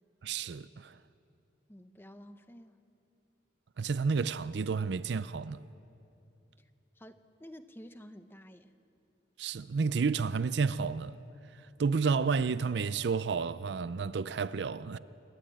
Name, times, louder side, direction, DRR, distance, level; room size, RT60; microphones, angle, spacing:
voice 1, 0.2-1.0 3.8-5.6 9.4-11.2 11.8-15.0, right 5 dB, 60° right, 0.4 m, -31 dB
voice 2, 1.7-2.8 6.6-6.7 7.0-8.7, equal, 10° left, 0.7 m, -51 dB
27.5 x 12.0 x 8.8 m
head